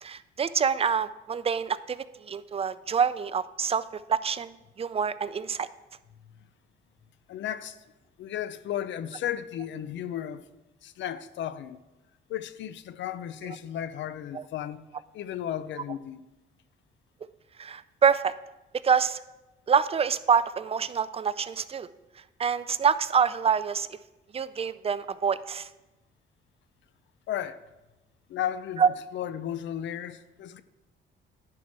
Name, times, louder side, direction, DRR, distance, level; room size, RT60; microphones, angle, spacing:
voice 1, 0.0-3.8 4.1-5.7 14.3-14.4 17.6-18.3 18.8-19.2 19.7-21.9 22.4-23.9 24.3-25.7 28.8-28.9, right 6 dB, 30° right, 0.4 m, -26 dB
voice 2, 7.3-7.8 8.2-10.4 10.8-11.8 12.3-14.8 15.1-16.2 27.3-27.6 28.3-30.6, left 10 dB, 70° left, 0.5 m, -34 dB
10.5 x 4.7 x 5.8 m
cardioid pair, 90°, 20 cm